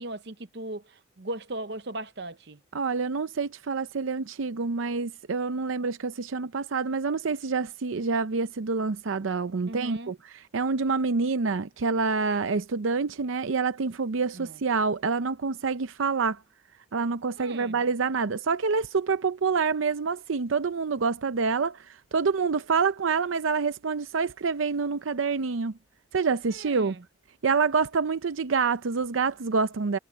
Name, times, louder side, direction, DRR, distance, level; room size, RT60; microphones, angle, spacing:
voice 1, 0.0-2.6 9.7-10.1 14.3-14.6 17.4-17.8 26.5-27.0, right 1 dB, 55° right, 0.9 m, -38 dB
voice 2, 2.7-16.4 16.9-25.7 26.1-27.0 27.4-30.0, right 4 dB, 85° right, 0.6 m, -27 dB
head